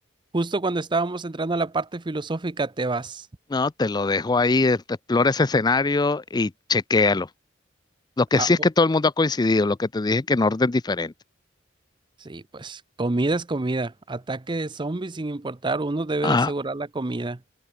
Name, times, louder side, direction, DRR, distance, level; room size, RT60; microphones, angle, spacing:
voice 1, 0.3-3.3 8.4-8.5 12.2-17.4, right 2 dB, 25° right, 0.6 m, -27 dB
voice 2, 3.5-7.3 8.2-11.1 16.2-16.5, left 3 dB, 20° left, 0.4 m, -21 dB
head